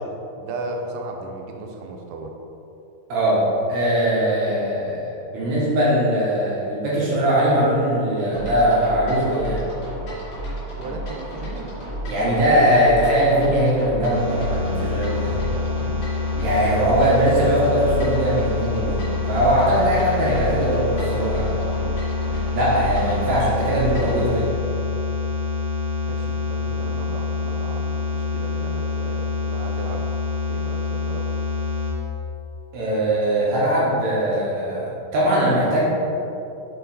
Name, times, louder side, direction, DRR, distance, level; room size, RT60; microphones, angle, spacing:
voice 1, 0.4-2.3 10.7-11.8 15.2-15.8 16.2-16.5 26.0-30.1 30.5-31.3 34.3-34.5 35.2-35.9, right 3 dB, 85° right, 2 dB, 2.2 m, -35 dB
voice 2, 3.1-9.6 12.1-15.3 16.4-21.7 22.5-24.4 32.7-35.9, equal, 65° right, -6 dB, 2.3 m, -20 dB
sound 1, 8.3-24.2, right 1 dB, 55° left, 2.4 m, -32 dB
sound 2, 14.1-31.9, left 4 dB, 40° right, 1.0 m, -26 dB
5.7 x 4.6 x 4.0 m, 2.8 s
omnidirectional pair, 3.7 m